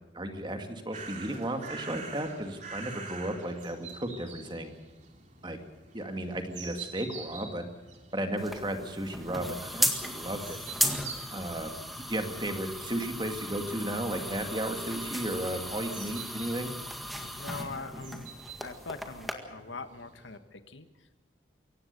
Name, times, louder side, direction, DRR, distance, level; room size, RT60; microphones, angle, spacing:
voice 1, 0.1-4.7 5.4-5.6 5.9-7.7 8.1-10.6 11.3-11.7 12.1-16.7, right 1 dB, 25° right, 5 dB, 2.3 m, -34 dB
sound 1, 0.9-20.4, right 4 dB, 40° right, 3.1 m, -48 dB
sound 2, 8.4-19.3, equal, ahead, 1.9 m, -36 dB
voice 2, 17.2-18.2 18.6-21.2, left 4 dB, 80° left, 9 dB, 1.6 m, -42 dB
23.5 x 18.0 x 6.9 m, 1.2 s
head